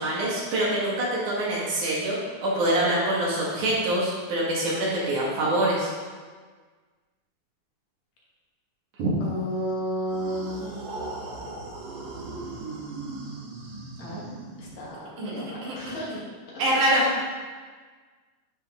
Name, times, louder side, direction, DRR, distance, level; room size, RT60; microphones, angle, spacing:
voice 1, 0.0-5.9 9.0-9.1 15.2-15.9 16.6-17.0, right 1 dB, 70° right, -5 dB, 2.9 m, -25 dB
voice 2, 9.2-11.1 14.0-14.2 14.6-17.2, equal, 65° left, -4 dB, 2.4 m, -33 dB
sound 1, 10.1-14.9, right 3 dB, 90° right, 2.7 m, -38 dB
11.0 x 4.1 x 3.6 m, 1.5 s
omnidirectional pair, 3.7 m